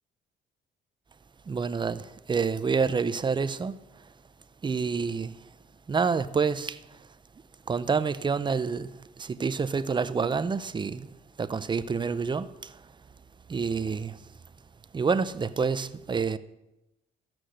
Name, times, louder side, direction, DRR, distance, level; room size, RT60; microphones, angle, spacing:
voice 1, 1.5-4.1 4.6-5.4 5.9-7.0 7.7-11.1 11.4-12.8 13.5-14.2 14.9-16.4, right 5 dB, 25° right, 0.5 m, -28 dB
13.0 x 6.0 x 6.4 m
cardioid pair, 90°, 20 cm